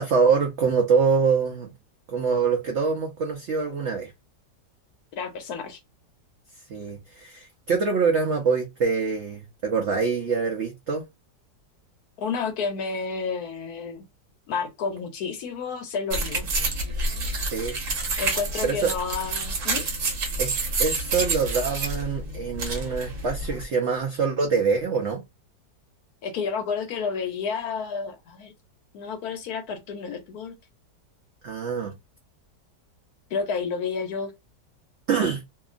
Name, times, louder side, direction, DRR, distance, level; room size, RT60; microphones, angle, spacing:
voice 1, 0.0-1.7 2.1-4.1 6.7-11.0 17.5-17.7 18.6-18.9 20.4-20.5 20.8-25.2 31.4-31.9 35.1-35.4, right 5 dB, 75° right, 0.6 m, -24 dB
voice 2, 5.2-5.8 12.2-14.1 14.5-16.5 18.2-19.9 26.2-28.5 28.9-30.5 33.3-34.3, left 5 dB, 70° left, 1.0 m, -30 dB
sound 1, 16.1-23.6, right 3 dB, 55° right, 1.1 m, -28 dB
2.8 x 2.4 x 2.4 m
omnidirectional pair, 1.9 m